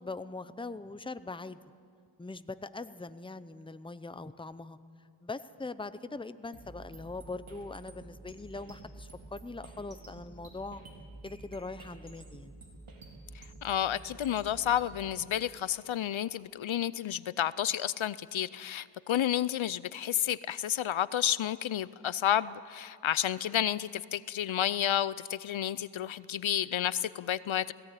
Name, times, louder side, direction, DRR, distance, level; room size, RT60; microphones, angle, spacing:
voice 1, 0.0-1.6 2.2-4.8 5.2-10.8 11.2-12.5, left 3 dB, 10° left, 13 dB, 0.6 m, -41 dB
sound 1, 6.5-15.2, right 2 dB, 75° right, 3.8 m, -50 dB
voice 2, 13.3-27.7, left 10 dB, 70° left, 18 dB, 0.6 m, -31 dB
18.0 x 17.0 x 9.0 m, 2.3 s
wide cardioid pair, 70°, 49 cm